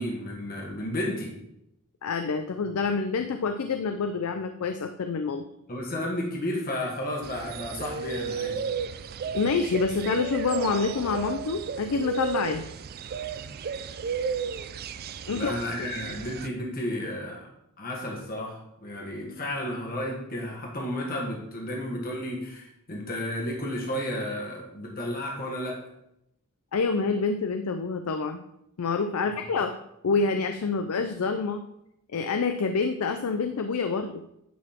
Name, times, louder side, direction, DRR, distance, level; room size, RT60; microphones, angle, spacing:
voice 1, 0.0-1.3 5.7-8.7 13.3-13.6 15.3-17.5 17.8-25.9, left 1 dB, 40° left, -1 dB, 1.5 m, -32 dB
voice 2, 2.0-5.4 9.3-12.7 15.3-15.5 26.7-28.4 28.8-29.7 30.0-31.6 32.1-34.2, left 4 dB, 75° left, 7 dB, 0.5 m, -27 dB
sound 1, 7.2-16.5, right 6 dB, 45° right, 0.4 m, -34 dB
9.4 x 4.2 x 4.3 m, 0.80 s
head